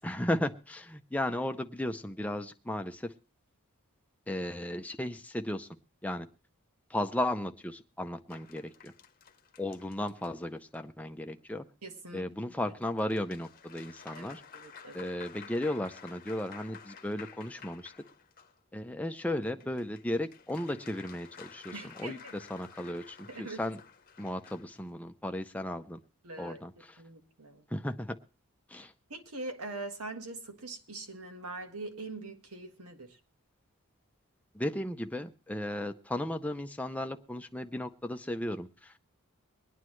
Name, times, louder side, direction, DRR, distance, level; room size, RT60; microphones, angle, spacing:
voice 1, 0.0-3.1 4.3-5.7 6.0-6.3 6.9-8.9 9.6-11.7 12.1-14.4 14.9-17.9 18.7-21.7 22.0-23.8 24.2-26.0 26.4-26.9 27.7-28.2 28.7-28.9 34.5-39.0, left 1 dB, 5° left, 0.6 m, -35 dB
sound 1, 8.3-10.8 12.6-18.6 19.4-24.8, left 7 dB, 40° left, 0.9 m, -52 dB
voice 2, 11.8-12.3 14.1-14.3 14.5-15.1 21.7-22.3 23.3-23.6 26.2-26.6 27.0-27.6 29.1-33.2, right 2 dB, 80° right, 1.6 m, -42 dB
23.5 x 9.6 x 3.1 m
head